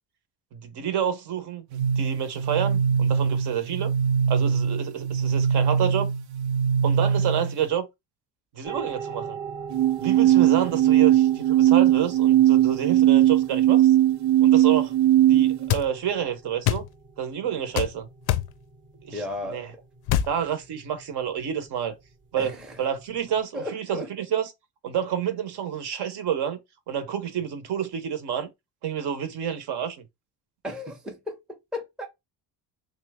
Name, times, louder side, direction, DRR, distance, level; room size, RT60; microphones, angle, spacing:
voice 1, 0.5-3.9 4.3-6.1 6.8-7.9 8.5-9.4 10.0-13.9 14.4-14.9 15.3-16.8 17.2-18.1 19.0-19.2 19.5-19.7 20.3-22.0 22.3-22.5 22.8-24.5 24.8-26.6 26.9-28.5 28.8-30.0, right 9 dB, 60° right, 0.9 m, -29 dB
sound 1, 1.7-7.7 9.7-15.7, right 11 dB, 85° right, 0.8 m, -20 dB
sound 2, 8.6-23.4, right 6 dB, 25° right, 0.8 m, -42 dB
sound 3, 15.7-15.9 16.7-16.9 17.8-17.9 18.3-18.5 20.1-20.3, left 12 dB, 55° left, 0.5 m, -23 dB
voice 2, 19.1-19.8 22.4-22.8 23.5-24.1 30.6-32.1, left 2 dB, ahead, 0.5 m, -35 dB
3.2 x 2.8 x 3.4 m
cardioid pair, 155°, 46 cm